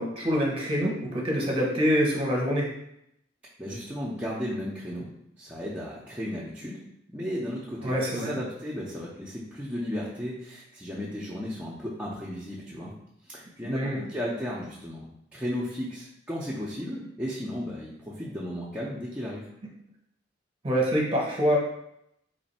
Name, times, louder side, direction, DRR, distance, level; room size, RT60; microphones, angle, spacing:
voice 1, 0.0-2.7 7.8-8.4 13.6-14.0 20.6-21.6, equal, 30° right, -2 dB, 0.9 m, -25 dB
voice 2, 3.6-5.1 5.4-6.8 7.1-12.9 13.3-19.4, equal, 5° right, -7 dB, 0.5 m, -34 dB
3.2 x 2.6 x 4.1 m, 0.78 s
head